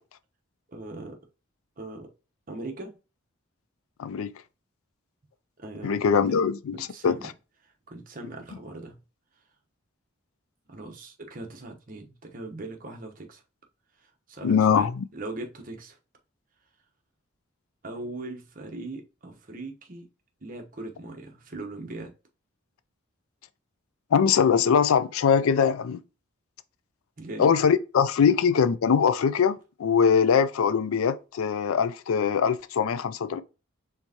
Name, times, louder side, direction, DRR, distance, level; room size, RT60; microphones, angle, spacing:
voice 1, 0.7-1.2 1.8-2.1 2.5-2.9 5.6-6.0 6.3-6.4 6.7-7.3 7.6-9.0 10.7-13.4 14.0-16.0 17.8-20.1 20.4-22.1 27.2-27.6 28.2-28.3, right 2 dB, 40° right, 0.9 m, -40 dB
voice 2, 4.0-4.3 5.8-7.2 14.4-15.0 24.1-26.0 27.4-33.4, left 6 dB, 90° left, 0.4 m, -22 dB
4.4 x 3.5 x 2.8 m
head